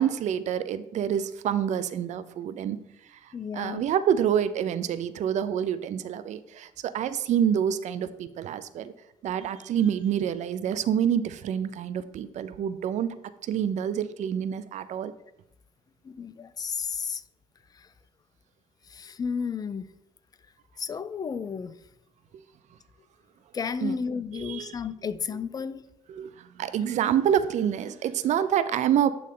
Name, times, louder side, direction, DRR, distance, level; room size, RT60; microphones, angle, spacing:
voice 1, 0.0-2.8 3.1-3.2 3.5-8.9 9.2-13.1 13.4-15.1 23.8-24.0 24.3-24.7 26.1-29.1, right 9 dB, 55° right, 13 dB, 0.4 m, -27 dB
voice 2, 3.3-3.8 16.0-17.2 17.7-17.9 18.9-19.9 20.8-21.8 23.5-25.8, left 6 dB, 25° left, 15 dB, 0.4 m, -32 dB
8.4 x 3.2 x 3.8 m, 0.84 s
cardioid pair, 90°, 14 cm